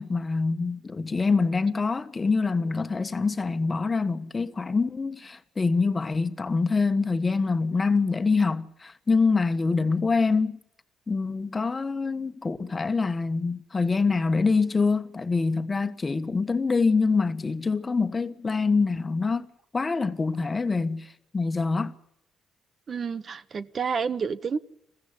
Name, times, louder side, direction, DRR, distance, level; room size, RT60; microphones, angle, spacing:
voice 1, 0.0-10.6 11.1-19.5 19.7-21.1 21.3-21.9, left 4 dB, 25° left, 1.4 m, -25 dB
voice 2, 22.9-24.6, right 6 dB, 45° right, 0.8 m, -29 dB
21.5 x 15.5 x 9.7 m
cardioid pair, 90°, 0 cm